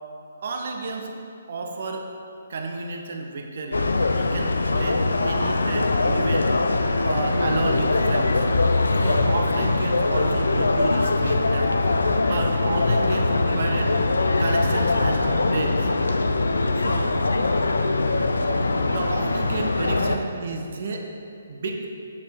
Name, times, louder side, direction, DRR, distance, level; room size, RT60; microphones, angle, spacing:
voice 1, 0.4-1.1 1.5-2.1 2.5-3.8 4.1-6.5 7.0-8.4 9.0-11.8 12.2-13.9 14.4-15.9 16.8-17.2 18.9-21.1 21.5-21.9, right 3 dB, 60° right, 3 dB, 0.8 m, -31 dB
sound 1, 3.7-20.2, left 2 dB, 85° left, 0.4 m, -22 dB
7.2 x 6.5 x 3.4 m, 2.6 s
figure-of-eight pair, 140°, 0 cm